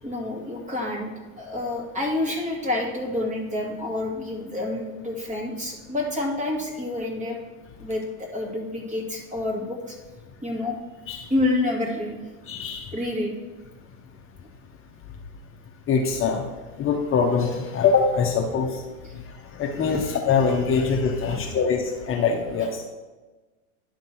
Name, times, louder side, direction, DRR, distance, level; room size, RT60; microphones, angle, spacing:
voice 1, 0.0-7.4 7.8-10.0 10.4-10.8 11.3-12.2 12.9-13.3 19.1-19.2 21.3-21.5, left 2 dB, 15° right, -1 dB, 2.3 m, -28 dB
voice 2, 12.5-12.9 15.9-16.4 16.8-18.8 19.5-22.8, left 5 dB, 30° left, 1 dB, 1.0 m, -23 dB
11.0 x 3.8 x 6.1 m, 1.2 s
supercardioid pair, 115°, 41 cm